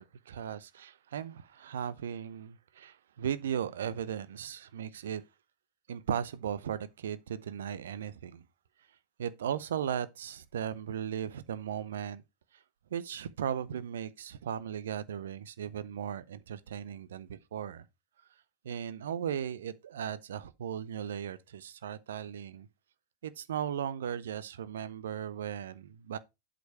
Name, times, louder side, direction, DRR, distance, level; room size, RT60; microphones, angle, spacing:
voice 1, 0.0-5.2 5.9-8.4 9.2-12.2 12.9-17.8 18.6-22.7 23.2-26.2, right 9 dB, 60° right, 0.6 m, -37 dB
8.0 x 5.1 x 4.7 m
figure-of-eight pair, 90°, 0 cm